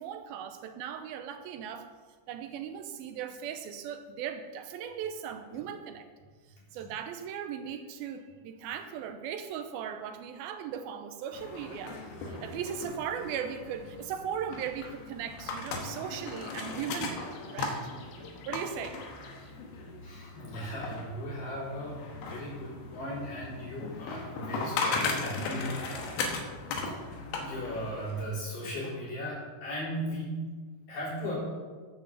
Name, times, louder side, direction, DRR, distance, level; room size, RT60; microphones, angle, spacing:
voice 1, 0.0-1.9 2.3-6.1 6.7-17.8 18.5-19.0, right 8 dB, 90° right, 8 dB, 2.6 m, -38 dB
sound 1, 11.3-28.2, left 3 dB, 85° left, 3.2 m, -37 dB
voice 2, 20.0-26.4 26.9-30.5 30.9-31.3, equal, 60° left, -7 dB, 5.7 m, -37 dB
10.5 x 6.8 x 7.1 m, 1.5 s
omnidirectional pair, 4.3 m